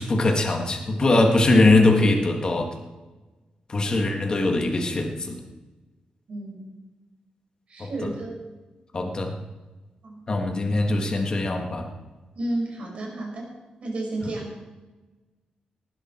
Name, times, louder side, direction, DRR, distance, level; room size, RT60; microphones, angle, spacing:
voice 1, 0.0-2.7 3.7-5.4 7.8-8.1 8.9-9.3 10.3-11.9 14.2-14.3, left 2 dB, 30° left, 2 dB, 2.0 m, -21 dB
voice 2, 6.3-6.7 7.7-8.3 10.0-10.1 12.4-13.5 13.8-14.5, right 2 dB, 50° right, -1 dB, 5.6 m, -31 dB
19.0 x 11.5 x 4.6 m, 1.2 s
wide cardioid pair, 150°, 3 cm